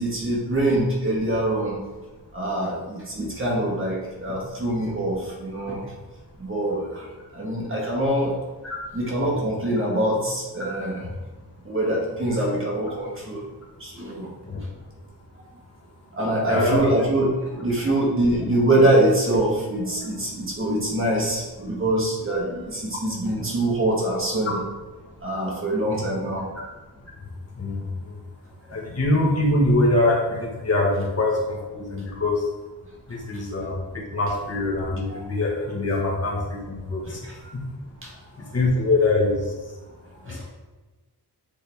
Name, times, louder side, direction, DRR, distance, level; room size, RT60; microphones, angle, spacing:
voice 1, 0.0-1.8 2.3-5.8 6.4-7.1 7.3-8.3 8.9-11.1 11.7-13.4 13.8-14.3 16.1-24.6 25.2-26.4 33.6-33.7 35.1-35.2 37.0-37.4 38.0-38.1 40.3-40.4, right 1 dB, 30° right, -4 dB, 1.8 m, -24 dB
voice 2, 16.5-16.9 27.5-28.2 28.7-32.5 33.1-37.6 38.5-39.5 40.3-40.5, left 2 dB, 40° left, -4 dB, 1.5 m, -24 dB
8.4 x 3.9 x 3.5 m, 1.2 s
wide cardioid pair, 90°, 39 cm